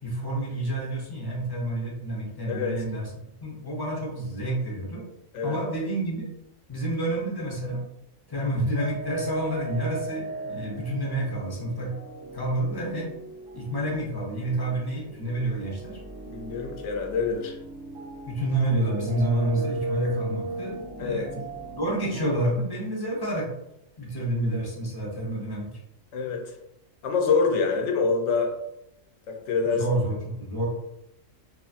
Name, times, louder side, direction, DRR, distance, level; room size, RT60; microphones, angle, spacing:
voice 1, 0.0-3.1 3.4-5.0 5.4-6.3 6.7-7.8 8.3-12.0 12.3-13.1 13.5-16.0 18.3-21.3 21.8-23.5 24.0-25.7 29.6-30.7, right 1 dB, 30° left, -3 dB, 0.4 m, -29 dB
voice 2, 2.5-2.8 5.3-5.6 16.2-17.6 21.0-21.2 26.1-26.4 27.0-28.5 29.3-29.8, left 4 dB, 70° left, 3 dB, 0.8 m, -26 dB
sound 1, 8.8-22.5, right 3 dB, 55° right, 0.7 m, -38 dB
2.9 x 2.4 x 2.4 m, 0.85 s
omnidirectional pair, 1.4 m